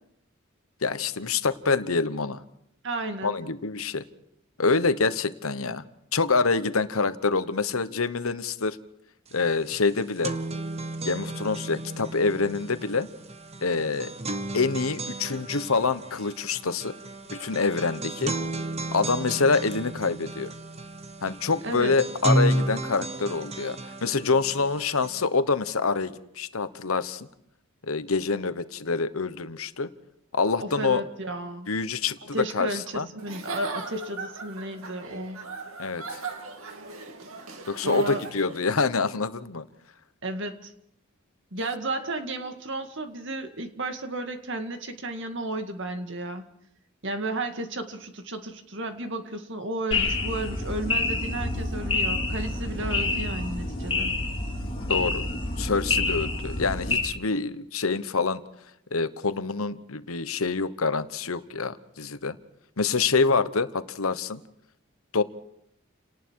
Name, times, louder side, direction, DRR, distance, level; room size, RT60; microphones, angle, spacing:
voice 1, 0.8-2.4 3.2-4.0 4.6-5.8 6.1-8.8 9.3-10.3 11.0-13.1 13.6-14.1 14.5-16.9 17.3-18.3 18.9-20.5 21.2-27.3 27.9-29.9 30.3-31.0 31.7-32.7 32.9-33.1 35.8-36.2 37.7-39.6 54.9-55.2 55.6-58.4 58.9-62.3 62.8-64.4 65.1-65.2, left 4 dB, 80° left, 12 dB, 1.1 m, -26 dB
voice 2, 2.8-3.4 21.6-21.9 30.6-31.7 32.3-35.4 37.8-38.2 40.2-40.7 41.5-46.5 47.0-54.2, right 2 dB, 60° right, 6 dB, 2.1 m, -33 dB
sound 1, 9.3-9.4 9.7-25.3, right 1 dB, 30° right, 1.2 m, -33 dB
Giggle / Chuckle chortle, 33.2-38.7, right 4 dB, 80° right, 2.5 m, -39 dB
sound 2, 49.9-57.0, left 2 dB, 25° left, 4.1 m, -28 dB
30.0 x 18.5 x 4.8 m, 0.73 s
head